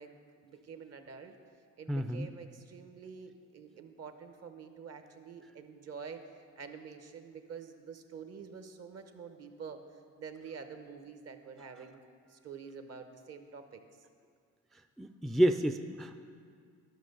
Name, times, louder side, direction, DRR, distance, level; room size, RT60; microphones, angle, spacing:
voice 1, 0.0-1.4 1.8-6.2 6.6-12.0 12.3-13.8, right 6 dB, 55° right, 7 dB, 1.0 m, -47 dB
voice 2, 1.9-2.3 15.0-16.2, right 1 dB, ahead, 6 dB, 0.3 m, -29 dB
11.5 x 6.3 x 5.4 m, 2.1 s
cardioid pair, 80°, 31 cm